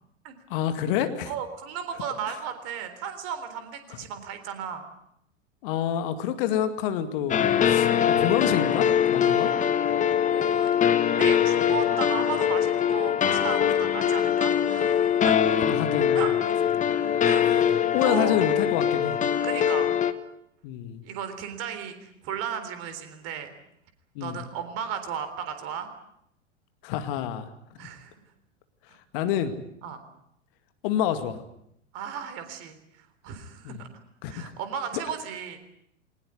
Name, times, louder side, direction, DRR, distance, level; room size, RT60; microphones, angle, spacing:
voice 1, 0.5-1.3 5.6-9.5 15.7-16.2 16.9-17.2 17.9-19.2 20.6-21.0 24.2-24.4 26.8-27.5 29.1-29.6 30.8-31.4 33.6-33.8 34.2-34.5, left 10 dB, 45° left, 9 dB, 2.2 m, -27 dB
voice 2, 1.3-4.8 10.2-10.7 11.2-15.6 16.1-16.7 17.2-18.4 19.4-19.9 21.0-23.5 24.2-25.9 27.8-28.1 29.8-30.0 31.9-33.9 34.3-35.6, right 8 dB, 40° right, 9 dB, 3.8 m, -35 dB
sound 1, 7.3-20.1, left 9 dB, 20° left, 1.3 m, -23 dB
21.5 x 19.5 x 9.5 m, 0.75 s
figure-of-eight pair, 90°, 36 cm